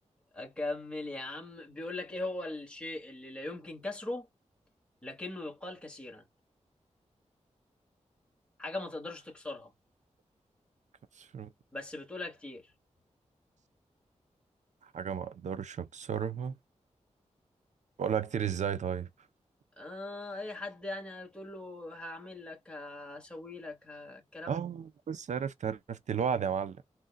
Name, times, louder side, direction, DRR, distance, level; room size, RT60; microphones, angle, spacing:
voice 1, 0.3-4.3 5.0-6.2 8.6-9.7 11.7-12.7 19.8-24.6, left 2 dB, 10° left, 2.1 m, -40 dB
voice 2, 11.2-11.5 14.9-16.6 18.0-19.1 24.5-26.8, right 7 dB, 80° right, 0.6 m, -33 dB
4.1 x 3.7 x 2.3 m
wide cardioid pair, 85°, 12 cm